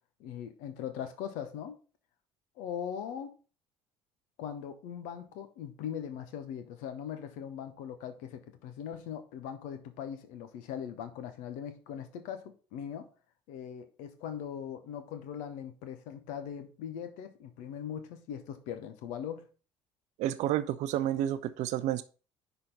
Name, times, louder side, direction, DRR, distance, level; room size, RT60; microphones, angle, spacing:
voice 1, 0.2-1.8 2.6-3.4 4.4-13.1 13.5-19.5, left 8 dB, 70° left, 0.9 m, -40 dB
voice 2, 20.2-22.0, right 12 dB, 60° right, 0.5 m, -30 dB
5.7 x 4.0 x 5.2 m
hypercardioid pair, 60°, 13 cm